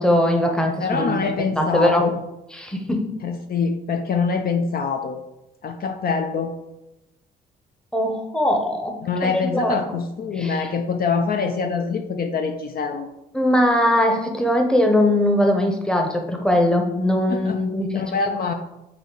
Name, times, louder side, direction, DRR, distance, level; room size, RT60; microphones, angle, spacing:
voice 1, 0.0-1.3 1.6-2.1 2.6-3.0 7.9-9.0 9.5-9.8 10.4-10.7 13.3-18.0, left 1 dB, 5° left, 3 dB, 0.8 m, -20 dB
voice 2, 0.8-2.1 3.2-5.2 5.6-6.5 9.0-13.1 17.3-17.6 17.9-18.5, left 5 dB, 50° left, 5 dB, 0.5 m, -24 dB
4.1 x 2.7 x 4.7 m, 0.91 s
cardioid pair, 90°, 20 cm